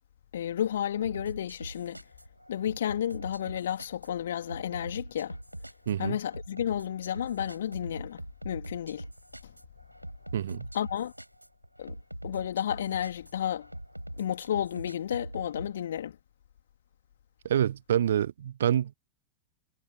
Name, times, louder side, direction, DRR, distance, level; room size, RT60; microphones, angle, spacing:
voice 1, 0.3-2.0 2.5-5.4 6.0-9.0 9.4-9.5 10.7-11.1 11.8-12.0 12.2-13.7 14.2-16.2, left 10 dB, 65° left, 3.1 m, -32 dB
sound 1, 1.0-15.7, right 1 dB, 90° right, 6.1 m, -43 dB
voice 2, 5.9-6.2 10.3-10.7 17.4-18.9, right 10 dB, 65° right, 0.4 m, -27 dB
figure-of-eight pair, 90°, 0 cm